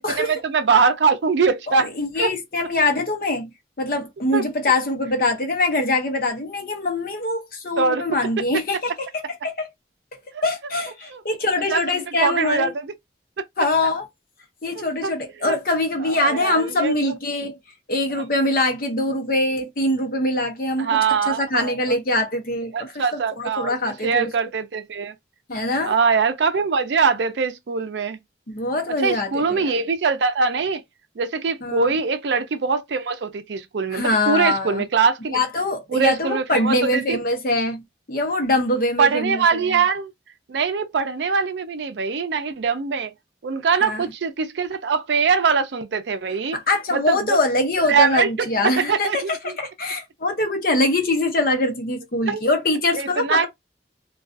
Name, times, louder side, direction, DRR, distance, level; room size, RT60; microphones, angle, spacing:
voice 1, 0.0-1.9 2.2-2.3 4.3-4.4 7.8-8.0 10.3-10.4 11.1-11.2 11.7-12.7 13.4-13.7 14.7-15.1 15.4-15.6 16.0-17.1 18.1-18.2 20.8-22.0 22.7-25.1 25.8-28.2 29.0-30.8 31.2-35.4 35.9-37.2 39.0-40.1 40.5-43.1 43.4-46.6 46.9-47.4 47.9-49.6 52.3-52.4 52.9-53.5, right 5 dB, 70° right, 0.4 m, -22 dB
voice 2, 1.7-9.7 10.4-12.7 13.6-14.1 14.6-17.5 17.9-21.0 21.3-24.3 25.5-25.9 28.5-29.7 31.6-31.9 33.9-34.8 35.3-39.8 43.8-44.1 46.5-53.5, left 2 dB, 50° left, 0.7 m, -23 dB
2.4 x 2.3 x 2.5 m
head